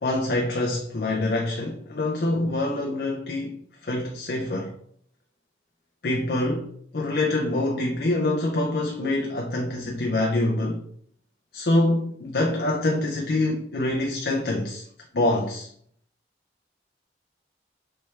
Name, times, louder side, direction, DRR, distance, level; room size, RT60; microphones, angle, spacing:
voice 1, 0.0-4.7 6.0-10.8 11.5-14.8 15.1-15.7, left 2 dB, 60° left, 0.5 m, -25 dB
4.2 x 3.4 x 3.2 m
head